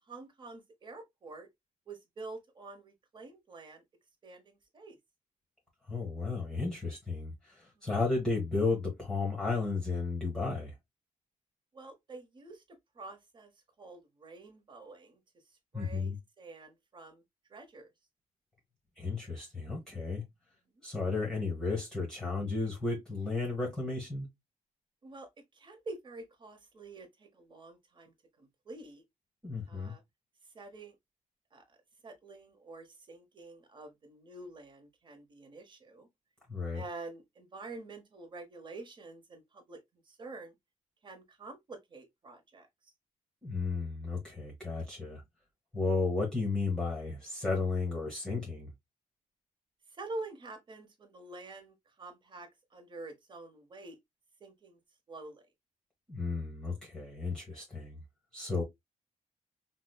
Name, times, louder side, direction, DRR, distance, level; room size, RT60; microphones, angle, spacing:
voice 1, 0.1-1.5 1.9-3.8 4.2-5.0 11.7-13.5 13.8-15.2 15.7-17.2 17.5-17.9 20.7-20.8 25.0-29.0 29.7-30.0 30.5-30.9 31.5-31.8 32.0-36.1 36.7-40.5 41.0-42.7 49.9-54.0 54.4-54.8 55.1-55.5, right 2 dB, 35° right, 1.0 m, -47 dB
voice 2, 5.9-10.7 15.7-16.2 19.0-20.2 20.8-24.3 29.4-29.9 36.5-36.8 43.4-45.2 45.7-48.7 56.1-58.0 58.3-58.6, left 3 dB, 5° left, 1.1 m, -33 dB
5.0 x 2.1 x 2.3 m
wide cardioid pair, 165°, 14 cm